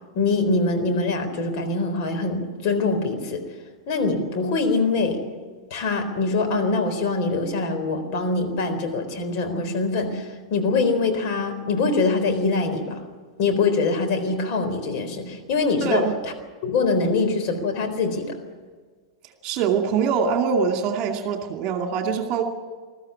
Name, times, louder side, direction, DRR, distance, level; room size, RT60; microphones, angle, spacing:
voice 1, 0.1-3.4 3.9-5.2 5.7-13.0 13.4-16.3 16.6-18.4, left 3 dB, 45° left, 5 dB, 4.0 m, -23 dB
voice 2, 15.8-16.1 19.4-22.4, right 6 dB, 40° right, 4 dB, 2.4 m, -23 dB
21.5 x 14.0 x 9.7 m, 1.5 s
figure-of-eight pair, 95°, 2 cm